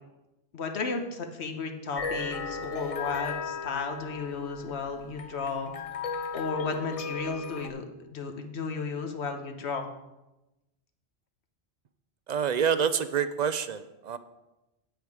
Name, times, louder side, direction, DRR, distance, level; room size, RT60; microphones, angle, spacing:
voice 1, 0.5-5.7 6.3-9.9, left 4 dB, 75° left, 5 dB, 1.3 m, -34 dB
sound 1, 1.9-7.7, left 5 dB, 45° left, 0.5 m, -36 dB
voice 2, 12.3-14.2, right 7 dB, 55° right, 12 dB, 0.5 m, -27 dB
8.7 x 8.1 x 4.8 m, 1.0 s
omnidirectional pair, 1.1 m